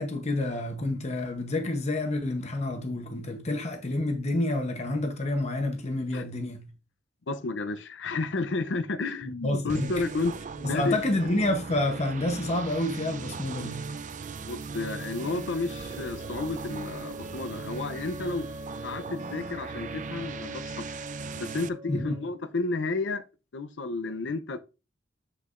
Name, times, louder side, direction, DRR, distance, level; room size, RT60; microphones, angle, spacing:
voice 1, 0.0-6.7 9.2-10.0 10.6-13.9 21.9-22.2, left 2 dB, 40° left, 0.9 m, -29 dB
voice 2, 7.3-11.0 14.4-18.5 18.8-21.0 21.4-23.2 23.5-24.6, left 3 dB, 75° left, 0.6 m, -32 dB
sound 1, 9.7-21.7, right 4 dB, 45° right, 0.5 m, -38 dB
Wind instrument woodwind instrument, 14.7-22.4, equal, 20° right, 2.5 m, -44 dB
7.7 x 6.6 x 2.5 m
head